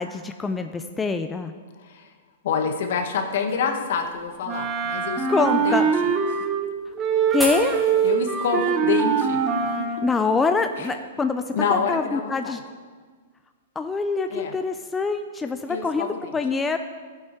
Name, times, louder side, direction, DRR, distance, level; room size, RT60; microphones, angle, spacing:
voice 1, 0.0-1.5 5.3-5.9 7.3-7.8 10.0-11.4 11.7-12.6 13.8-16.8, left 4 dB, 10° left, 7 dB, 0.4 m, -25 dB
voice 2, 1.8-2.1 2.4-5.8 6.3-6.4 8.0-9.4 9.8-9.9 10.8-10.9 11.5-12.6 14.3-14.5 15.7-16.2, left 6 dB, 65° left, 5 dB, 1.3 m, -27 dB
sound 1, 2.5-10.9, equal, 5° right, 2.4 m, -40 dB
Wind instrument woodwind instrument, 4.5-6.7 7.0-10.1, right 6 dB, 25° right, 0.9 m, -23 dB
12.5 x 7.8 x 4.4 m, 1.5 s
hypercardioid pair, 145°, 0 cm